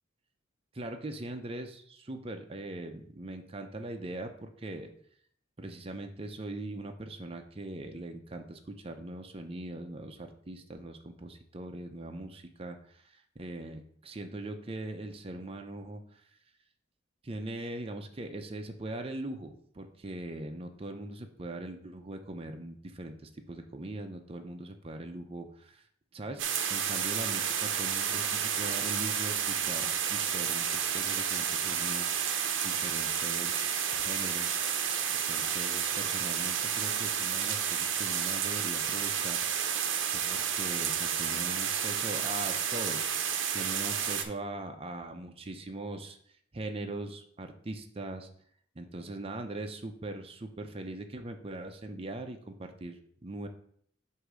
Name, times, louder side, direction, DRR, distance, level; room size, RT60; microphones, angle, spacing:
voice 1, 0.7-4.9 5.6-16.3 17.2-25.9 26.1-26.4 26.7-34.6 35.3-39.4 40.1-43.0 43.5-48.3 48.8-53.5, right 2 dB, 30° right, 5 dB, 0.6 m, -41 dB
sound 1, 26.4-44.2, right 8 dB, 75° right, 0.7 m, -31 dB
8.1 x 2.8 x 6.1 m, 0.62 s
head